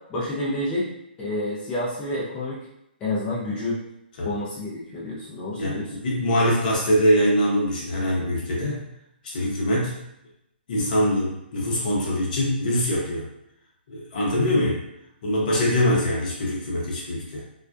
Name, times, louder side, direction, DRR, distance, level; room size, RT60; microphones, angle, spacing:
voice 1, 0.1-0.9 1.2-2.6 3.0-3.8 4.2-5.9, left 1 dB, 15° left, -8 dB, 0.5 m, -29 dB
voice 2, 5.6-8.8 9.2-10.0 10.7-13.2 13.9-14.8 15.2-17.4, equal, 50° left, -3 dB, 0.8 m, -23 dB
2.3 x 2.1 x 2.5 m, 0.79 s
figure-of-eight pair, 130°, 6 cm